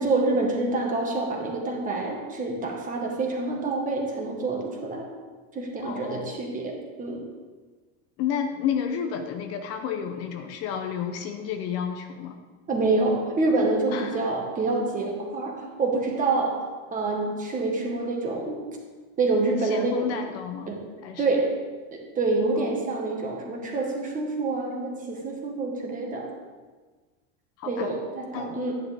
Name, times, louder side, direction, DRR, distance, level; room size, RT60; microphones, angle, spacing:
voice 1, 0.0-5.1 5.5-7.3 12.7-16.6 16.9-18.7 19.2-20.1 20.7-20.8 21.2-21.6 21.9-26.3 27.7-28.8, right 3 dB, 20° right, 1 dB, 1.5 m, -27 dB
voice 2, 5.8-6.4 8.2-12.4 13.9-14.3 19.6-20.7 21.0-21.3 22.6-22.7 27.6-27.9 28.3-28.6, left 7 dB, 40° left, 6 dB, 0.7 m, -31 dB
11.5 x 10.5 x 3.5 m, 1.4 s
cardioid pair, 170°, 37 cm